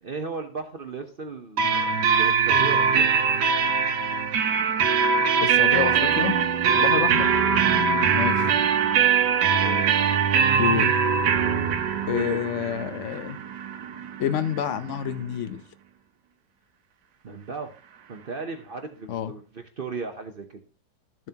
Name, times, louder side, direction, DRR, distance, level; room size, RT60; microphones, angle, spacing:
voice 1, 0.0-3.2 6.6-6.9 9.6-10.0 12.1-12.4 15.3-15.4 17.2-17.7 18.1-20.6, right 4 dB, 50° right, 6 dB, 0.7 m, -36 dB
sound 1, 1.6-15.1, right 6 dB, 80° right, 1.3 m, -22 dB
voice 2, 5.4-6.4 6.8-7.3 8.1-8.5 10.6-10.9 12.1-13.4 14.2-15.6 19.1-19.3, left 10 dB, 60° left, 13 dB, 0.8 m, -28 dB
13.5 x 7.1 x 2.8 m, 0.38 s
omnidirectional pair, 1.8 m